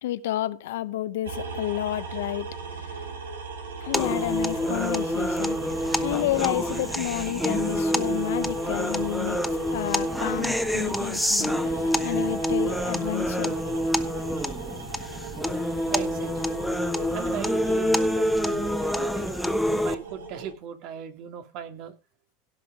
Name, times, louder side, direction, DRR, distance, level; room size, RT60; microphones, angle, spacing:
voice 1, 0.0-2.5 2.8-3.1 3.8-5.6 6.0-9.4 9.7-13.6, left 14 dB, 75° left, 1.1 m, -30 dB
sound 1, 1.2-20.5, right 4 dB, 90° right, 4.3 m, -38 dB
sound 2, 3.9-20.0, equal, ahead, 1.4 m, -27 dB
voice 2, 15.9-16.5 17.1-19.3 19.7-21.9, right 9 dB, 55° right, 2.8 m, -38 dB
17.0 x 5.8 x 5.1 m
hypercardioid pair, 100°, 0 cm